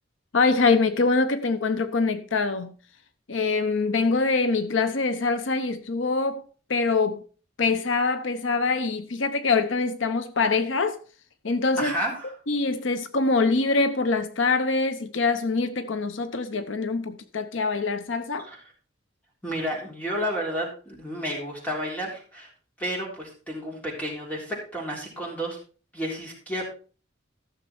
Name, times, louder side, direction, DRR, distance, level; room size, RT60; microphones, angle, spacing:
voice 1, 0.3-2.7 3.3-6.4 6.7-7.2 7.6-11.0 11.4-11.9 12.5-18.5, left 3 dB, 80° left, 0.8 m, -24 dB
voice 2, 11.8-12.4 18.4-18.6 19.4-22.5 22.8-25.6 25.9-26.6, equal, 10° left, 3.6 m, -31 dB
13.5 x 6.6 x 4.4 m
head